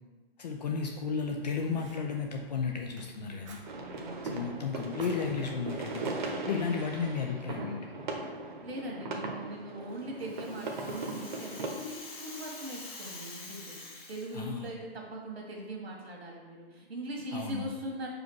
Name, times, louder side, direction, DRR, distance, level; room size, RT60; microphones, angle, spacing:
voice 1, 0.4-3.6 4.3-7.9 14.3-14.7 17.3-17.7, left 5 dB, 40° left, 2 dB, 0.6 m, -33 dB
Fire, 1.1-7.2, right 4 dB, 30° right, 0.6 m, -53 dB
sound 1, 3.7-11.7, right 3 dB, 50° right, 1.1 m, -38 dB
voice 2, 3.7-5.0 8.6-18.1, right 1 dB, 85° right, -2 dB, 1.9 m, -41 dB
Rattle (instrument), 9.9-14.7, left 2 dB, 15° left, 1.4 m, -46 dB
5.7 x 5.0 x 4.7 m, 1.3 s
hypercardioid pair, 155°, 31 cm